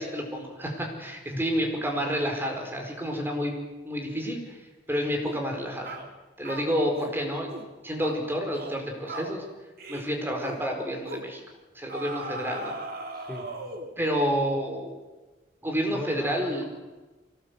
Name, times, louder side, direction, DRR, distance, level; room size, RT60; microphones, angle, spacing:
voice 1, 0.0-3.5 3.8-4.6 4.9-6.0 6.4-7.5 7.8-9.4 9.9-11.4 11.7-12.7 14.0-15.0 15.6-16.6, equal, 15° right, 2 dB, 4.7 m, -29 dB
sound 1, 5.2-5.5 5.8-6.1 6.4-7.2 7.5-7.7 8.0-8.2 8.5-8.8 9.1-9.4 9.8-10.1 10.4-10.6 11.1-11.3 11.9-13.9, right 2 dB, 55° right, 3.1 m, -38 dB
voice 2, 13.1-13.5 15.9-16.6, left 1 dB, 5° left, -1 dB, 3.6 m, -37 dB
24.0 x 19.0 x 8.2 m, 1.2 s
head